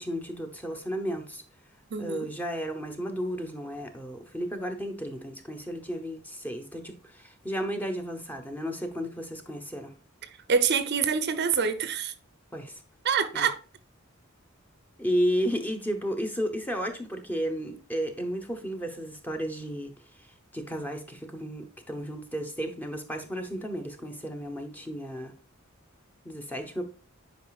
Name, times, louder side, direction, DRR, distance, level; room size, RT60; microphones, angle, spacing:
voice 1, 0.0-1.4 2.0-9.9 12.5-12.8 13.3-13.5 15.0-19.9 20.5-25.3 26.2-26.8, equal, 10° left, 0.9 m, -33 dB
voice 2, 1.9-2.3 10.2-12.1 13.0-13.6, right 6 dB, 55° right, 0.7 m, -26 dB
9.1 x 5.0 x 2.4 m
head